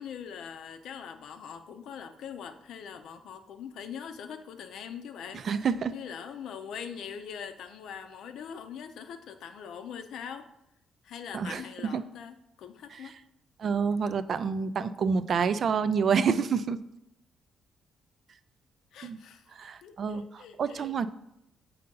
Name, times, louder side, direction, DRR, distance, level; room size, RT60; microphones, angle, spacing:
voice 1, 0.0-5.5 5.9-10.5 11.0-13.2 18.9-20.9, left 7 dB, 75° left, 7 dB, 0.5 m, -42 dB
voice 2, 5.3-6.0 11.3-12.0 12.9-13.1 13.6-16.8 19.0-19.2 19.5-20.2 20.6-21.1, right 6 dB, 55° right, 13 dB, 0.3 m, -28 dB
6.5 x 2.8 x 5.3 m, 0.81 s
cardioid pair, 90°, 0 cm